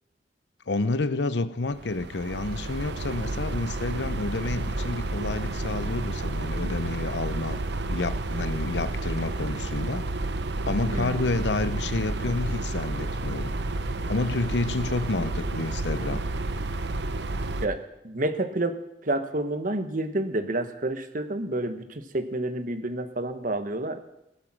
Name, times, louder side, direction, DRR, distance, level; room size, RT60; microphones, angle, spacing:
voice 1, 0.7-7.6 7.9-10.1 10.7-13.5 14.1-16.2, left 3 dB, 75° left, 14 dB, 0.8 m, -29 dB
sound 1, 1.7-17.7, right 2 dB, 75° right, 0.8 m, -31 dB
voice 2, 10.9-11.2 17.6-18.8 19.0-24.0, right 2 dB, 50° right, 9 dB, 1.3 m, -29 dB
17.0 x 13.0 x 6.2 m, 0.86 s
head